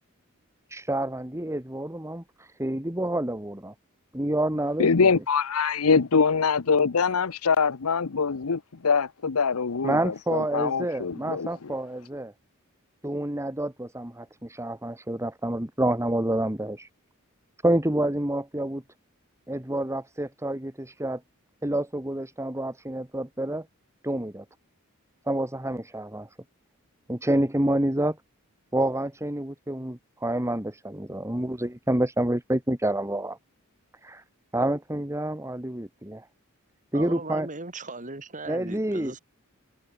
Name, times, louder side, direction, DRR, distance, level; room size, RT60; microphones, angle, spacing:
voice 1, 0.7-2.2 2.6-3.7 4.1-4.9 9.8-12.3 13.0-16.9 17.6-18.8 19.5-21.2 21.6-23.7 24.0-24.4 25.3-26.3 27.1-28.2 28.7-33.4 34.0-34.2 34.5-36.2 36.9-37.5 38.5-39.1, right 1 dB, 15° right, 2.0 m, -28 dB
voice 2, 4.8-11.5, left 5 dB, 85° left, 0.8 m, -24 dB
voice 3, 36.9-39.2, right 3 dB, 35° right, 5.6 m, -37 dB
head